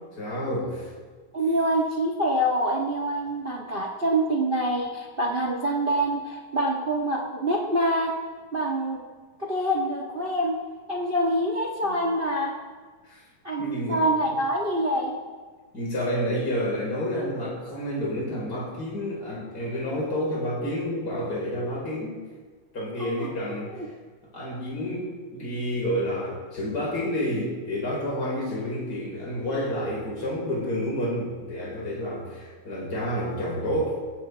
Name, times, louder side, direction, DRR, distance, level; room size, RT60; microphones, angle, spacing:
voice 1, 0.1-0.9 11.8-11.9 13.0-13.2 13.6-14.0 15.7-22.2 22.7-23.8 24.3-34.0, equal, 25° left, -4 dB, 4.9 m, -29 dB
voice 2, 1.3-8.1 8.5-9.0 9.4-10.6 10.9-12.5 13.4-15.2 23.0-23.3, right 1 dB, 75° right, 0 dB, 0.5 m, -25 dB
19.5 x 16.5 x 3.4 m, 1.5 s
omnidirectional pair, 3.8 m